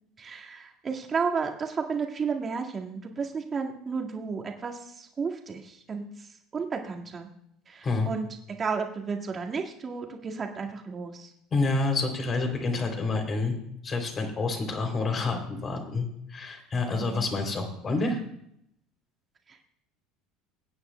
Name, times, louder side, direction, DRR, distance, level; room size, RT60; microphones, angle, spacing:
voice 1, 0.2-7.3 7.7-8.3 8.6-11.3 16.9-17.3 19.5-19.7, right 5 dB, 30° right, 1 dB, 1.8 m, -33 dB
voice 2, 11.5-13.6 13.8-18.2, left 3 dB, 35° left, 4 dB, 3.0 m, -28 dB
23.5 x 9.6 x 2.2 m, 0.74 s
figure-of-eight pair, 65°, 0 cm